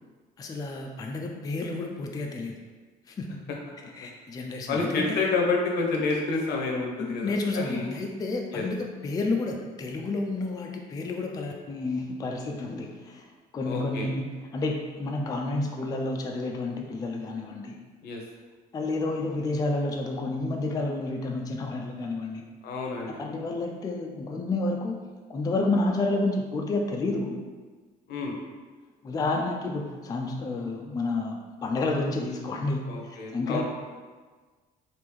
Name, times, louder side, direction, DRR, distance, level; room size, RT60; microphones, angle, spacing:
voice 1, 0.4-2.5 3.1-3.4 4.0-5.2 7.0-8.8 9.0-13.3 13.5-17.8 18.7-22.4 23.2-25.0 25.3-27.4 29.0-33.6, left 2 dB, 20° left, 1 dB, 0.3 m, -30 dB
voice 2, 4.7-7.9 8.5-8.6 13.6-14.1 18.0-18.2 22.6-23.2 28.1-28.4 32.9-33.6, left 3 dB, 75° left, 0 dB, 0.7 m, -29 dB
3.5 x 2.5 x 3.1 m, 1.4 s
cardioid pair, 110°, 17 cm